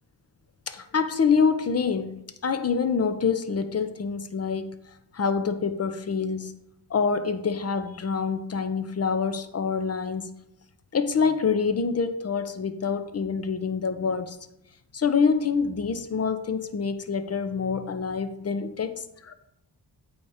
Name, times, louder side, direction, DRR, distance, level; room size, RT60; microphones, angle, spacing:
voice 1, 0.7-4.8 5.1-6.5 6.9-10.3 10.9-14.4 14.9-19.3, left 5 dB, 35° left, 0.7 m, -26 dB
8.2 x 4.6 x 4.9 m
cardioid pair, 90°, 41 cm